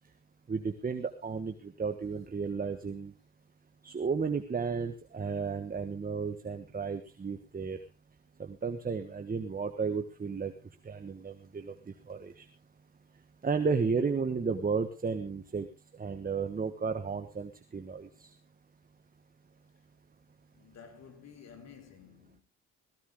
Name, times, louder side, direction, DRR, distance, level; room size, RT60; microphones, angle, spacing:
voice 1, 0.5-3.1 3.8-7.8 8.4-10.5 10.8-12.5 13.4-15.7 16.0-18.3, right 5 dB, 30° right, 1.4 m, -33 dB
voice 2, 20.5-22.4, left 7 dB, 60° left, 4.1 m, -52 dB
16.5 x 15.5 x 3.7 m
cardioid pair, 90°, 30 cm